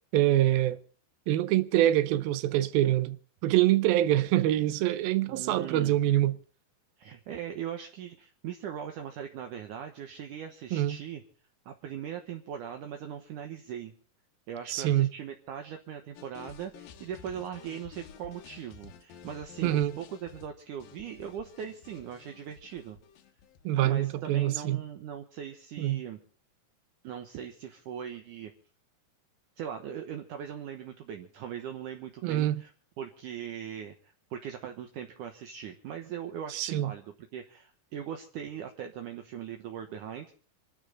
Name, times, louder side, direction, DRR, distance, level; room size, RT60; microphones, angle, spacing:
voice 1, 0.1-0.8 1.3-3.2 3.4-6.4 10.7-11.0 14.7-15.1 19.6-19.9 23.6-24.8 25.8-26.0 32.2-32.6 36.5-36.9, right 13 dB, 90° right, 2.7 m, -25 dB
voice 2, 5.3-5.9 7.0-11.2 11.7-13.9 14.5-23.0 23.8-26.2 27.0-28.5 29.6-32.7 33.0-37.1 37.3-40.3, right 9 dB, 65° right, 2.5 m, -40 dB
sound 1, 16.2-24.2, left 7 dB, 80° left, 3.0 m, -52 dB
26.5 x 12.0 x 3.9 m
omnidirectional pair, 4.1 m